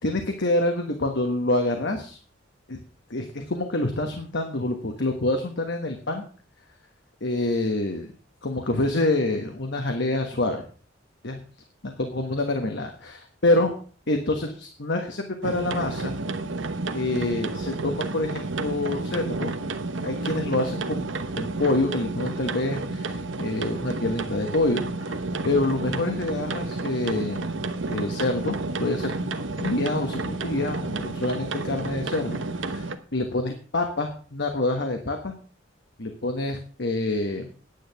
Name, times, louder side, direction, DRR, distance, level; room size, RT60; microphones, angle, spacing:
voice 1, 0.0-2.2 2.7-2.8 3.1-6.2 7.2-8.1 8.4-10.6 11.2-11.4 12.0-13.7 14.1-16.1 16.9-19.5 20.0-25.2 25.4-27.4 27.9-35.3 36.0-37.5, left 2 dB, 60° left, 4 dB, 1.4 m, -27 dB
sound 1, 15.4-33.0, right 3 dB, 70° right, 1.0 m, -31 dB
10.0 x 9.0 x 5.8 m, 0.41 s
head